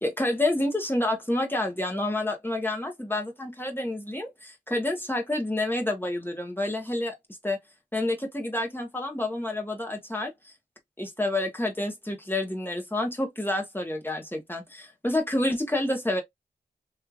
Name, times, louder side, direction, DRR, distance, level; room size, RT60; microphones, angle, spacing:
voice 1, 0.0-7.1 7.4-7.6 7.9-10.5 11.0-16.2, left 1 dB, 10° left, 1.2 m, -29 dB
3.2 x 2.7 x 2.3 m
cardioid pair, 40°, 18 cm